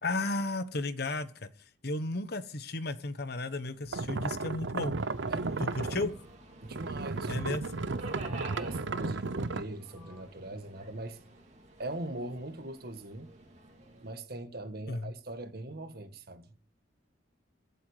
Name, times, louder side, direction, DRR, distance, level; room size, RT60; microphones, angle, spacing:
voice 1, 0.0-1.5 1.8-5.0 5.6-6.1 7.3-7.6 14.9-15.1, left 2 dB, 55° left, 1.1 m, -34 dB
sound 1, 3.4-10.2, right 2 dB, 10° left, 7.2 m, -58 dB
sound 2, 3.9-6.3 6.7-9.6, right 3 dB, 80° right, 0.7 m, -34 dB
Subway metro underground, 5.0-14.1, right 2 dB, 40° right, 2.8 m, -51 dB
voice 2, 5.3-6.1 6.6-7.4 8.4-11.2 11.8-13.3 14.0-16.7, right 1 dB, 55° right, 1.6 m, -41 dB
23.0 x 7.9 x 5.0 m
head